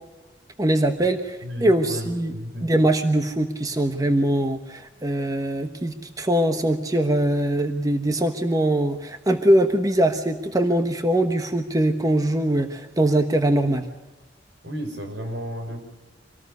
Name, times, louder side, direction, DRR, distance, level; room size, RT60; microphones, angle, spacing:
voice 1, 0.6-2.3 2.6-13.9, right 1 dB, 20° right, 7 dB, 1.2 m, -22 dB
voice 2, 1.4-2.7 14.6-15.8, equal, 75° right, 4 dB, 6.2 m, -33 dB
26.0 x 18.5 x 6.7 m, 1.1 s
head